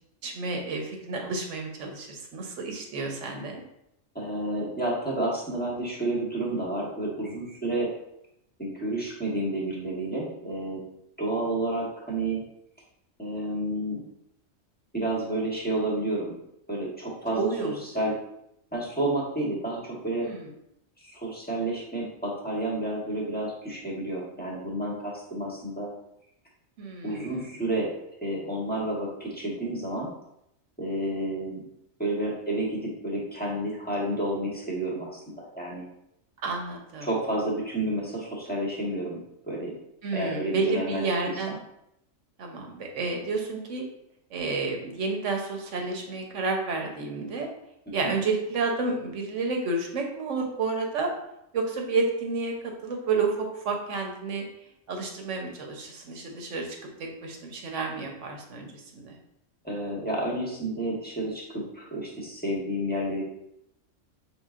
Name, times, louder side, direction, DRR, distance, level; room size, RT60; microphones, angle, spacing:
voice 1, 0.2-3.6 17.3-17.8 20.2-20.5 26.8-27.4 36.4-37.1 40.0-41.5 42.4-43.8 44.3-47.5 47.9-51.1 51.5-54.4 54.9-56.7 57.2-59.2, right 3 dB, 70° right, 2 dB, 1.1 m, -30 dB
voice 2, 4.1-7.9 8.6-10.8 11.2-12.4 13.2-14.0 14.9-16.3 16.7-18.1 18.7-20.3 21.0-25.9 27.0-27.9 28.2-30.1 30.8-31.6 32.0-35.9 37.0-39.2 39.5-39.7 40.1-41.6 47.9-48.1 59.6-63.2, right 1 dB, 10° left, -4 dB, 1.0 m, -30 dB
5.6 x 3.5 x 2.4 m, 0.80 s
omnidirectional pair, 1.4 m